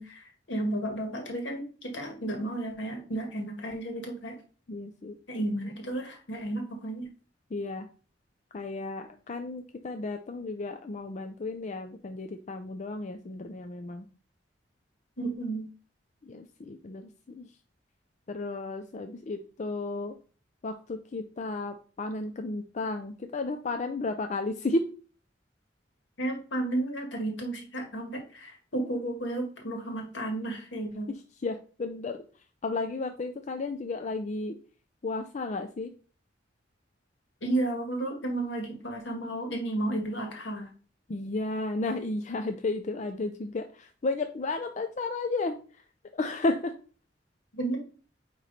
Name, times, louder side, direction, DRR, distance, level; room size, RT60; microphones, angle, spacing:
voice 1, 0.0-4.4 5.3-7.1 15.2-15.7 26.2-31.1 37.4-40.7 47.5-47.8, right 1 dB, 75° left, 2 dB, 1.8 m, -33 dB
voice 2, 4.7-5.2 7.5-7.9 8.5-14.1 16.2-17.5 18.3-20.2 20.6-24.8 31.4-32.2 32.6-34.6 35.0-35.9 41.1-45.6 46.1-46.7, left 2 dB, 40° left, 6 dB, 0.5 m, -33 dB
9.1 x 3.1 x 4.1 m, 0.39 s
head